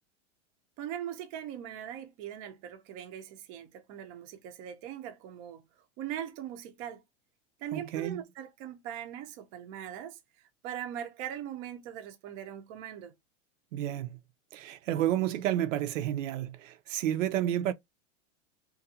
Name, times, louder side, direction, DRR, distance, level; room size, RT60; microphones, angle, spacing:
voice 1, 0.8-5.6 6.0-7.0 7.6-10.2 10.6-13.1, right 10 dB, 30° right, 0.4 m, -40 dB
voice 2, 7.7-8.2 13.7-14.2 14.5-17.7, right 12 dB, 85° right, 0.5 m, -30 dB
2.5 x 2.2 x 2.7 m
supercardioid pair, 150°, 37 cm